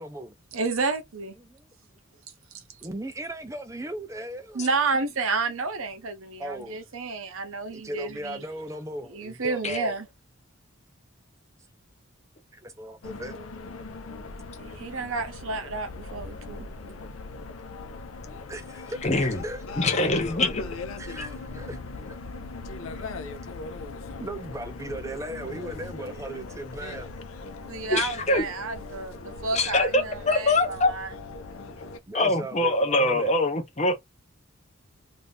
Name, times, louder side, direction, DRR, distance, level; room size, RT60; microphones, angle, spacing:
voice 1, 0.0-0.3 1.4-1.7 2.8-4.7 6.4-6.8 7.7-9.9 12.5-13.3 18.5-19.6 21.0-21.8 22.1-22.2 24.2-27.1 31.7-31.8 32.1-33.3, right 1 dB, 15° right, 0.4 m, -37 dB
voice 2, 0.5-1.4 2.7-2.8 4.5-8.4 9.1-10.1 14.6-16.7 27.7-31.1, right 4 dB, 75° right, 0.8 m, -30 dB
sound 1, 13.0-32.0, left 3 dB, 70° left, 0.5 m, -39 dB
voice 3, 19.0-19.4 19.8-20.7 27.9-28.5 29.5-30.9 32.1-34.0, left 2 dB, 30° left, 0.6 m, -24 dB
2.6 x 2.5 x 3.4 m
head